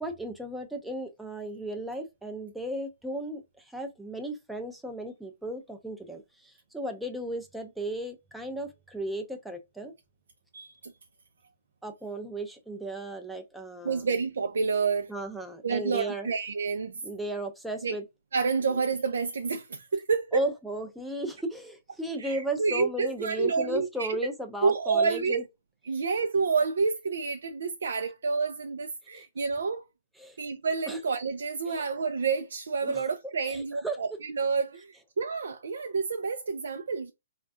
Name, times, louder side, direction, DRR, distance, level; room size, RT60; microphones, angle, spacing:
voice 1, 0.0-9.9 11.8-14.0 15.1-16.3 17.0-18.0 20.3-25.4 29.1-29.2 30.2-30.4 30.9-31.0 31.7-31.9 32.8-33.0 33.5-34.0, right 1 dB, ahead, 0.4 m, -35 dB
voice 2, 10.5-10.9 13.8-15.1 15.6-17.0 17.8-18.0 18.3-20.4 22.2-24.2 24.6-25.4 25.8-29.8 30.4-37.1, right 5 dB, 85° right, 0.4 m, -29 dB
4.2 x 2.3 x 2.5 m
hypercardioid pair, 170°, 0 cm